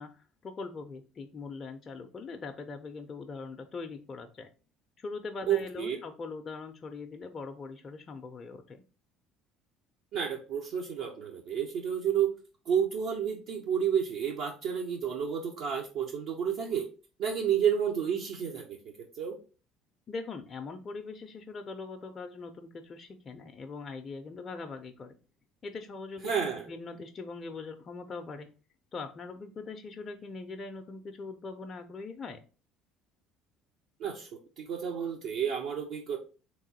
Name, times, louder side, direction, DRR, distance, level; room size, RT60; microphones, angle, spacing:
voice 1, 0.0-4.5 5.0-8.8 20.1-25.2 25.6-28.5 28.9-32.4, left 4 dB, 35° left, 5 dB, 0.4 m, -41 dB
voice 2, 5.5-6.0 10.1-12.3 12.7-16.9 17.2-18.8 19.2-19.4 26.2-26.7 34.0-34.3 34.6-36.2, right 8 dB, 60° right, 1 dB, 0.5 m, -30 dB
3.6 x 2.9 x 2.7 m, 0.34 s
hypercardioid pair, 60°, 0 cm